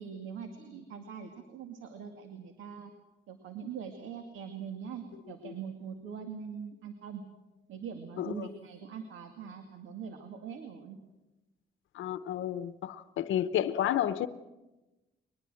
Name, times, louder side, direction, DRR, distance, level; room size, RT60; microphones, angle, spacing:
voice 1, 0.0-2.9 3.3-7.2 7.7-11.0, right 7 dB, 85° right, 2.2 m, -42 dB
voice 2, 8.2-8.5 11.9-14.3, left 11 dB, 75° left, 0.8 m, -31 dB
22.0 x 20.5 x 7.7 m
cardioid pair, 90°, 20 cm